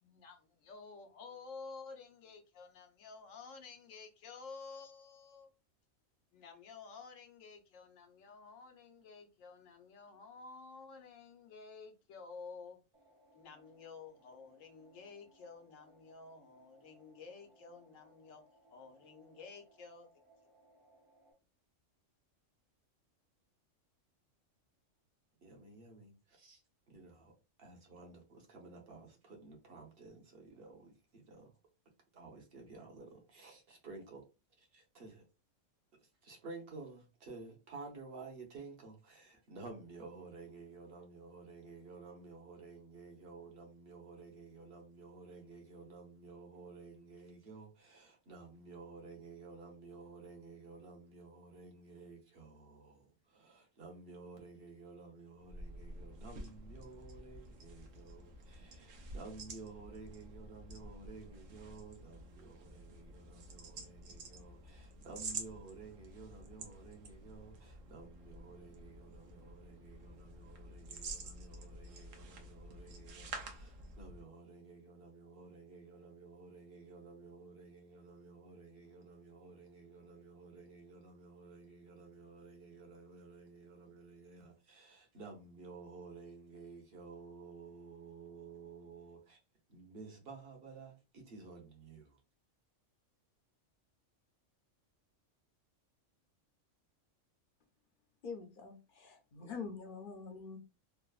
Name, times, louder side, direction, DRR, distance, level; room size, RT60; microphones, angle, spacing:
voice 1, 0.0-5.5 6.3-12.8 13.3-18.4 18.7-20.1, left 4 dB, 85° left, 1.0 m, -52 dB
sound 1, 12.9-21.3, right 2 dB, 35° right, 0.6 m, -67 dB
voice 2, 25.4-26.6 26.9-27.3 27.6-31.5 32.1-34.2 34.6-35.2 36.0-89.4 89.7-92.2, right 4 dB, 50° right, 1.0 m, -53 dB
sound 2, 55.4-74.3, right 3 dB, 80° right, 1.0 m, -49 dB
voice 3, 98.2-100.6, left 5 dB, 55° left, 0.6 m, -45 dB
3.2 x 2.0 x 2.3 m
omnidirectional pair, 1.3 m